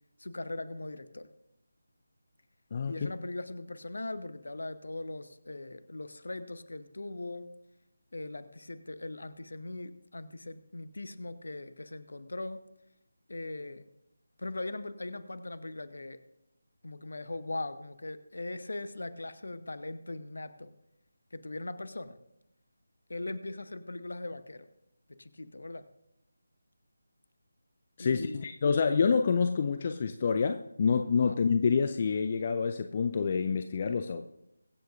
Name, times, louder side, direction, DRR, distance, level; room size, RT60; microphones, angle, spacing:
voice 1, 0.2-1.3 2.9-7.5 8.1-12.7 13.3-13.9 14.4-16.2 16.8-20.7 21.3-22.2 23.1-24.7 25.2-25.9 28.0-28.5 31.2-31.3, left 2 dB, 60° left, 12 dB, 0.9 m, -40 dB
voice 2, 2.7-3.1 28.0-34.3, left 5 dB, 30° left, 8 dB, 0.5 m, -27 dB
23.0 x 7.9 x 2.6 m, 0.87 s
figure-of-eight pair, 155°, 0 cm